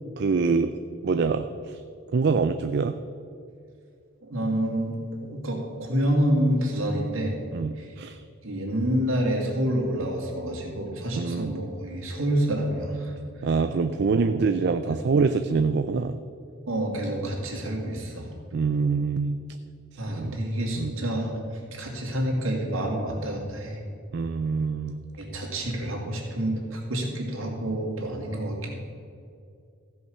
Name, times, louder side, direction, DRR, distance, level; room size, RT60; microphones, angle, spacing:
voice 1, 0.2-0.7 1.0-1.8 2.1-2.9 7.5-8.2 11.1-11.5 13.4-16.2 18.5-19.4 20.1-20.4 20.8-20.9 24.1-25.0, right 4 dB, 55° right, 9 dB, 0.4 m, -25 dB
voice 2, 4.2-7.4 7.7-7.9 8.4-13.1 14.0-14.4 14.8-15.0 16.7-18.3 20.0-21.3 21.7-23.8 25.2-28.7, right 1 dB, 75° right, -1 dB, 2.6 m, -28 dB
15.5 x 5.5 x 6.5 m, 2.5 s
head